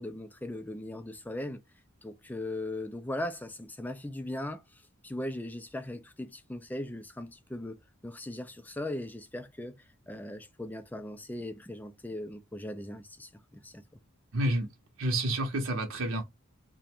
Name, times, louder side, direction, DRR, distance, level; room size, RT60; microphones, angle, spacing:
voice 1, 0.0-1.6 2.0-13.8, left 1 dB, 10° left, 0.3 m, -39 dB
voice 2, 14.3-14.7 15.0-16.2, right 1 dB, 60° right, 0.7 m, -29 dB
2.4 x 2.1 x 2.8 m
head